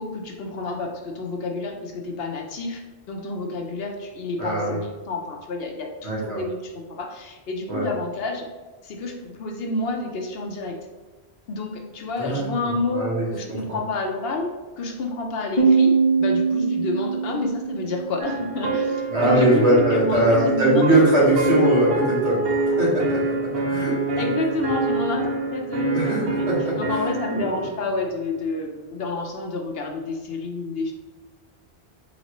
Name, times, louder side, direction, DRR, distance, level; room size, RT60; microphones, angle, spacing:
voice 1, 0.0-2.8 3.1-8.5 8.8-10.8 11.5-14.5 14.8-20.9 21.2-21.3 24.2-26.5 26.8-30.9, left 2 dB, 65° left, 2 dB, 0.9 m, -29 dB
voice 2, 4.4-4.8 6.0-6.4 7.7-7.9 12.2-12.5 12.9-13.8 19.1-22.4 22.8-23.3 23.7-23.9 25.9-26.2 26.5-27.0 27.3-27.7, right 1 dB, 80° right, -7 dB, 2.0 m, -21 dB
Piano, 15.6-19.0, right 5 dB, 30° left, 0.7 m, -22 dB
sound 1, 18.2-27.7, right 3 dB, 65° right, 0.9 m, -25 dB
4.2 x 4.0 x 3.0 m, 1.3 s
omnidirectional pair, 1.1 m